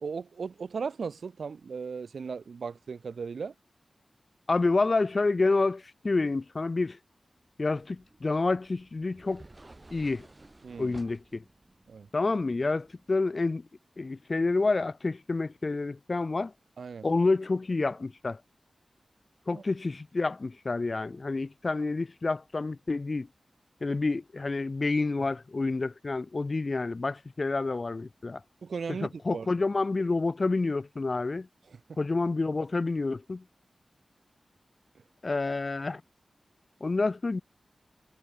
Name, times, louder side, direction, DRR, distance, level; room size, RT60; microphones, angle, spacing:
voice 1, 0.0-3.5 10.6-10.9 11.9-12.1 16.8-17.1 19.5-19.6 28.6-29.5 31.7-31.8, right 5 dB, 85° right, 0.5 m, -37 dB
voice 2, 4.5-7.0 7.6-9.4 9.9-10.3 10.8-11.4 12.1-13.6 14.0-16.5 17.0-18.4 19.5-23.3 23.8-28.4 29.0-31.5 32.0-33.4 35.2-36.0 36.8-37.4, left 3 dB, 50° left, 0.4 m, -28 dB
sound 1, 7.7-13.2, right 2 dB, 35° right, 4.2 m, -54 dB
cardioid pair, 55°, 0 cm